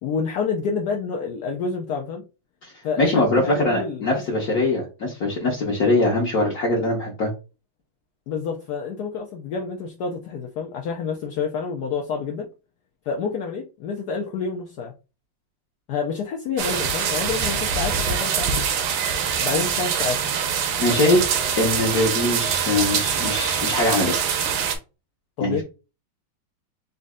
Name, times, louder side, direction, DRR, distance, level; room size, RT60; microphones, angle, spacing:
voice 1, 0.0-2.2 2.8-4.2 8.3-12.5 13.1-14.9 15.9-18.7 19.4-20.2 25.4-25.6, left 5 dB, 75° left, 0.9 m, -28 dB
voice 2, 3.0-7.3 20.8-24.2 25.4-25.6, left 2 dB, 50° left, 1.3 m, -22 dB
sound 1, 16.6-24.8, right 7 dB, 85° right, 1.7 m, -24 dB
4.2 x 2.7 x 3.5 m
omnidirectional pair, 2.4 m